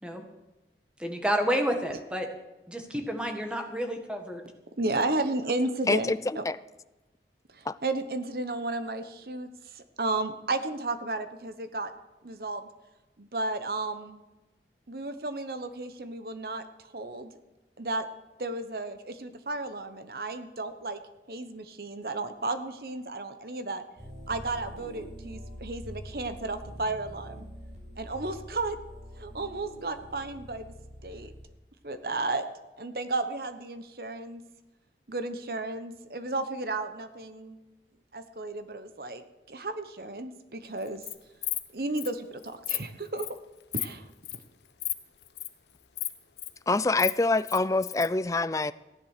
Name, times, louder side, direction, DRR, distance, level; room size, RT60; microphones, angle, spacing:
voice 1, 1.0-2.3 2.7-4.4, equal, 5° right, 1.7 m, -30 dB
voice 2, 4.8-6.4 7.5-11.9 12.2-12.7 13.2-14.2 14.9-17.3 17.8-18.0 18.4-21.0 21.3-23.8 24.3-27.5 28.0-28.8 29.2-30.7 31.0-31.3 31.8-32.4 32.8-34.4 35.1-37.6 38.1-41.0 41.7-43.3 43.7-44.4, right 2 dB, 55° right, 1.0 m, -33 dB
voice 3, 5.9-6.2 6.5-6.6 7.7-7.8 46.7-48.7, left 3 dB, 20° left, 0.4 m, -25 dB
sound 1, 24.0-31.5, equal, 40° right, 6.4 m, -45 dB
Insect, 40.8-41.1 41.4-41.6 42.0-42.1 42.4-42.8 43.2-43.4 43.7-43.9 44.2-44.4 44.8-44.9 45.2-45.5 46.0-46.5 46.8-48.1, left 16 dB, 75° left, 1.0 m, -32 dB
15.5 x 10.5 x 6.6 m
head